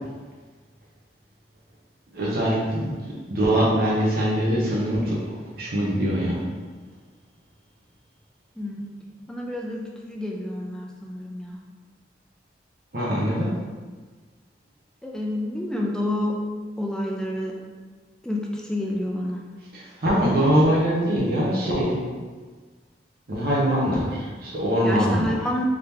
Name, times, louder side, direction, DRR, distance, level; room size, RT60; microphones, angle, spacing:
voice 1, 2.1-5.2 5.5-6.4 12.9-13.5 19.7-22.0 23.3-25.3, equal, 60° right, -6 dB, 0.9 m, -23 dB
voice 2, 8.6-8.9 9.3-11.6 15.0-16.4 16.8-17.6 18.2-19.5 24.8-25.6, left 1 dB, 5° left, -1 dB, 0.4 m, -29 dB
3.7 x 2.8 x 3.4 m, 1.4 s
head